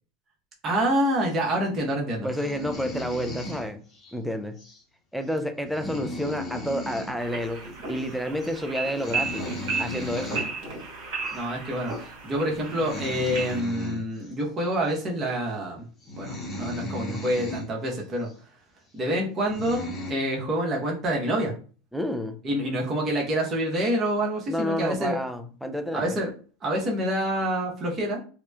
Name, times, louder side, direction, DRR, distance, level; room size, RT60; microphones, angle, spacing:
voice 1, 0.6-2.3 11.3-15.9 16.2-18.3 18.9-21.5 22.4-25.2 25.9-26.3 26.6-28.2, right 1 dB, 30° right, 0.8 m, -27 dB
voice 2, 2.2-3.8 4.1-4.6 5.1-9.5 9.8-10.4 21.9-22.4 24.5-26.1, equal, ahead, 0.3 m, -30 dB
sound 1, 2.3-4.1 4.6-4.8 5.2-5.3 5.6-7.2 7.4-7.6 7.8-8.1 8.4-8.6 8.9-10.5 11.3-11.4 11.9-12.1 12.6-14.3 14.9-15.0 15.6-15.7 16.0-17.7 18.2-18.3 19.0-19.1 19.4-20.1, left 1 dB, 25° left, 0.9 m, -36 dB
sound 2, 7.2-13.6, right 4 dB, 65° right, 1.5 m, -34 dB
2.9 x 2.0 x 2.3 m
supercardioid pair, 115°, 0 cm